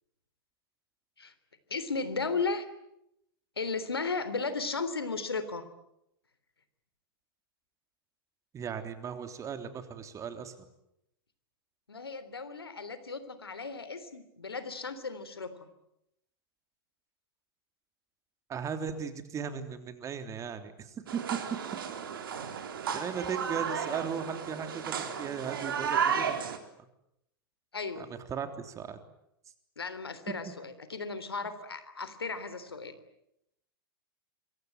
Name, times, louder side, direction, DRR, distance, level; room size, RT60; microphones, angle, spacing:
voice 1, 1.7-2.6 3.6-5.6 11.9-15.5 27.7-28.1 29.8-32.9, left 4 dB, 85° left, 12 dB, 3.3 m, -35 dB
voice 2, 8.5-10.5 18.5-21.2 22.9-26.5 27.9-29.0, right 7 dB, 25° right, 8 dB, 3.4 m, -37 dB
sound 1, 21.1-26.6, right 7 dB, 65° right, 4.0 m, -33 dB
26.5 x 23.5 x 9.1 m, 0.81 s
figure-of-eight pair, 100°, 13 cm